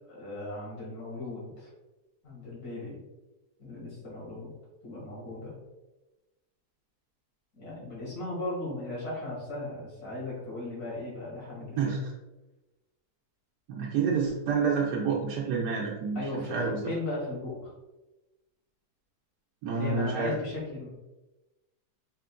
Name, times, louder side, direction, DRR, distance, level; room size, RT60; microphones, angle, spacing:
voice 1, 0.1-1.7 2.2-3.0 3.6-4.5 4.8-5.5 7.6-11.9 16.2-17.7 19.8-20.9, left 2 dB, 70° left, -6 dB, 2.3 m, -37 dB
voice 2, 13.7-16.2 16.5-16.8 19.6-20.3, right 5 dB, 85° right, -3 dB, 1.2 m, -28 dB
5.1 x 3.7 x 2.2 m, 1.0 s
omnidirectional pair, 1.7 m